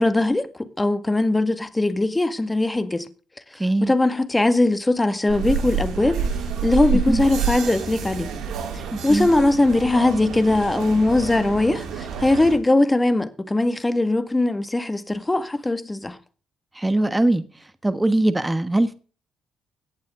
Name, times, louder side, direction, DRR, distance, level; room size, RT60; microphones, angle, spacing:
voice 1, 0.0-3.1 3.8-6.2 6.6-8.4 8.7-16.2, left 2 dB, 15° left, 1.9 m, -20 dB
voice 2, 3.6-3.9 6.9-7.2 9.1-9.3 16.7-17.4 17.8-18.9, right 1 dB, 10° right, 1.4 m, -21 dB
sound 1, 5.3-12.6, right 6 dB, 80° right, 5.3 m, -28 dB
17.5 x 11.0 x 3.8 m
cardioid pair, 90°, 0 cm